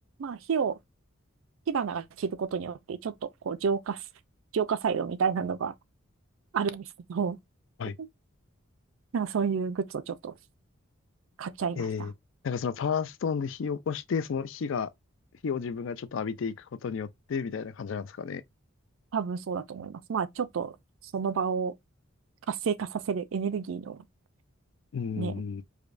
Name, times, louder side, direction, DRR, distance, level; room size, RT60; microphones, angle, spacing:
voice 1, 0.2-0.8 1.7-4.1 4.5-5.7 6.5-7.4 9.1-10.3 11.4-12.1 19.1-20.7 21.1-21.7 22.5-24.0 25.2-25.3, right 6 dB, 70° right, 0.4 m, -30 dB
voice 2, 11.8-12.1 12.4-14.9 15.4-18.4 24.9-25.6, left 6 dB, 65° left, 0.4 m, -32 dB
4.9 x 2.1 x 2.5 m
head